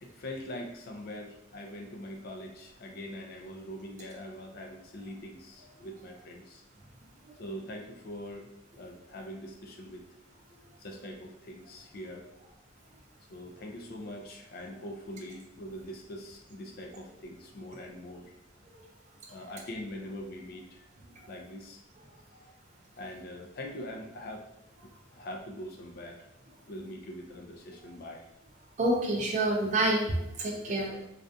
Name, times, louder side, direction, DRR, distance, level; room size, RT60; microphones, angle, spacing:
voice 1, 0.0-6.6 7.4-10.0 10.8-12.3 13.3-18.3 19.3-20.8 21.3-21.8 23.0-24.5 24.8-26.3 26.7-28.3 30.7-31.1, left 1 dB, 45° left, 2 dB, 0.4 m, -43 dB
voice 2, 28.8-30.9, right 1 dB, 35° right, 0 dB, 0.4 m, -27 dB
2.4 x 2.2 x 2.6 m, 0.82 s
head